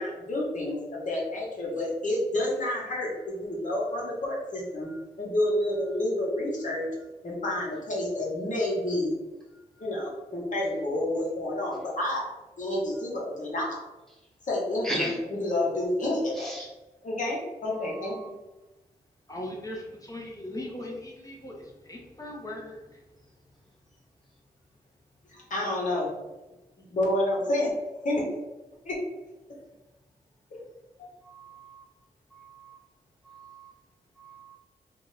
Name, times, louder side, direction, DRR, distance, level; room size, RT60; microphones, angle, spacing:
voice 1, 0.0-4.9 5.2-6.9 7.2-9.1 9.8-12.3 12.6-13.7 14.4-16.7 17.0-18.1 25.3-26.2 26.8-27.7 28.0-28.2 28.8-28.9 31.0-31.1, left 1 dB, 55° left, -4 dB, 1.1 m, -29 dB
voice 2, 19.3-22.8, left 1 dB, 25° left, -2 dB, 0.8 m, -39 dB
voice 3, 31.3-31.8 32.6-32.8 33.3-33.7 34.2-34.6, equal, ahead, -3 dB, 1.1 m, -36 dB
2.8 x 2.1 x 3.9 m, 1.1 s
supercardioid pair, 50°, 15 cm